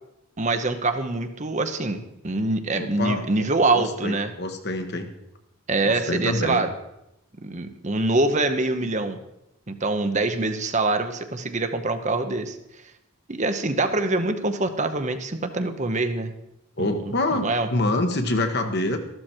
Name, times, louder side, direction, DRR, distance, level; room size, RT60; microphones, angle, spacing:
voice 1, 0.4-4.3 5.7-6.7 7.4-9.2 9.7-12.6 13.3-16.3 16.8-17.0 17.3-17.7, right 2 dB, 35° right, 8 dB, 0.9 m, -24 dB
voice 2, 2.7-3.2 3.7-5.1 5.8-6.6 16.8-19.0, left 2 dB, 50° left, 6 dB, 1.4 m, -26 dB
14.0 x 12.5 x 4.5 m, 0.85 s
head